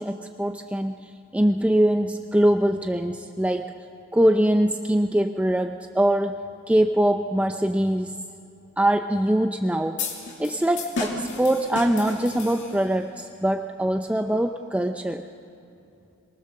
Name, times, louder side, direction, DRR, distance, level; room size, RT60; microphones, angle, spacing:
voice 1, 0.0-3.7 4.1-6.4 6.7-8.2 8.8-10.0 10.4-15.2, right 1 dB, 5° right, 6 dB, 0.4 m, -23 dB
sound 1, 10.0-13.0, left 3 dB, 55° left, 2.3 m, -33 dB
23.0 x 19.0 x 6.7 m, 2.6 s
head